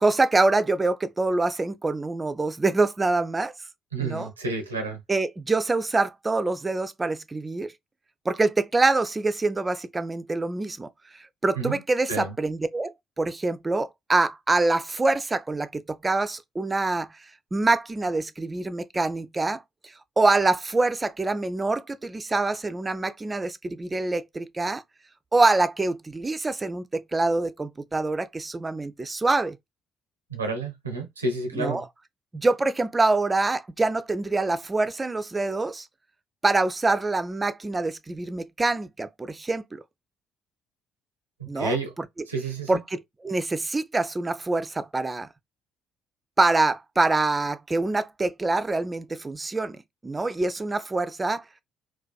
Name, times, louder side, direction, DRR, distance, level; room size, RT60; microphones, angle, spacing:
voice 1, 0.0-3.5 4.0-4.3 5.1-7.7 8.3-10.9 11.4-17.1 17.5-19.6 20.2-24.8 25.3-29.6 31.5-31.8 32.3-35.9 36.4-39.8 41.5-41.8 42.7-45.3 46.4-51.4, right 3 dB, 25° right, 0.3 m, -25 dB
voice 2, 3.9-5.0 11.6-11.8 12.1-12.3 30.3-31.8 41.6-41.9 42.3-42.7, right 3 dB, 90° right, 0.4 m, -30 dB
2.4 x 2.2 x 2.3 m
figure-of-eight pair, 50°, 0 cm